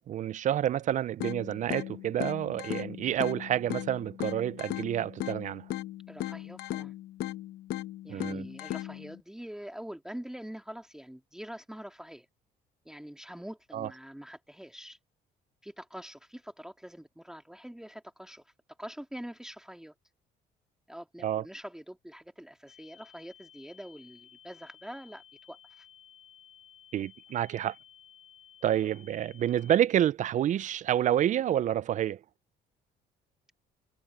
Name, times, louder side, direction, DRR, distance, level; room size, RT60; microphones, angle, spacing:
voice 1, 0.1-5.7 8.1-8.5 13.7-13.9 21.2-21.4 26.9-27.7 28.6-32.2, right 11 dB, 45° right, 0.5 m, -28 dB
sound 1, 1.2-9.2, left 14 dB, 75° left, 1.0 m, -38 dB
voice 2, 6.1-6.9 8.0-12.3 12.9-15.0 15.6-18.5 18.8-19.9 20.9-25.9, equal, 5° right, 2.1 m, -45 dB
sound 2, 22.7-29.8, left 10 dB, 40° left, 3.6 m, -56 dB
cardioid pair, 110°, 17 cm